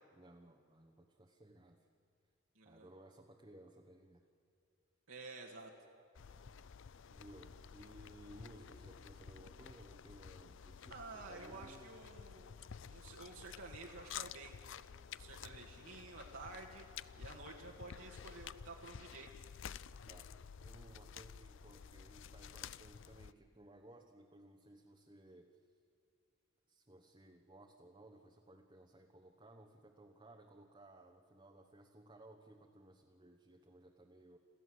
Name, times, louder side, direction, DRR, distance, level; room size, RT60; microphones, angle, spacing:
voice 1, 0.1-1.9 2.6-4.2 7.1-12.2 20.1-20.3 20.6-25.8 26.7-34.4, right 1 dB, 20° right, 2 dB, 1.2 m, -59 dB
voice 2, 2.6-2.9 5.1-5.7 10.9-12.6 12.8-14.6 15.1-16.9 17.2-19.3, right 3 dB, 65° right, -1 dB, 1.9 m, -51 dB
sound 1, 6.1-23.3, left 7 dB, 60° left, 0.5 m, -52 dB
27.0 x 15.0 x 7.9 m, 2.6 s
head